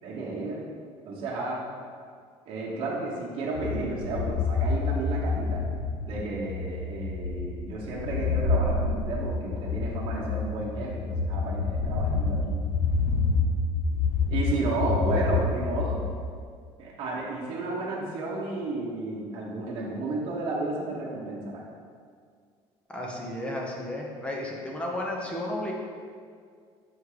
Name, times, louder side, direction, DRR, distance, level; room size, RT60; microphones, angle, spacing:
voice 1, 0.0-0.6 1.0-1.6 2.5-5.6 6.1-12.6 14.3-16.0 16.8-21.6, right 3 dB, 50° right, -5 dB, 1.0 m, -32 dB
sound 1, 3.6-16.4, left 4 dB, 85° left, 0.6 m, -28 dB
voice 2, 22.9-25.7, left 1 dB, 10° left, -1 dB, 0.7 m, -33 dB
6.5 x 3.6 x 4.8 m, 2.1 s
cardioid pair, 170°, 11 cm